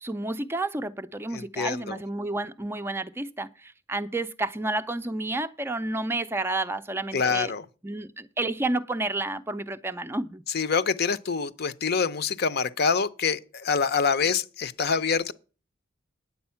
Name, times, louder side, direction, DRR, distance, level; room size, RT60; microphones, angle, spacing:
voice 1, 0.0-7.5 7.8-10.4, right 2 dB, 10° right, 0.4 m, -30 dB
voice 2, 1.3-2.0 7.1-7.6 10.5-15.3, left 5 dB, 55° left, 0.6 m, -26 dB
9.5 x 7.9 x 5.6 m
head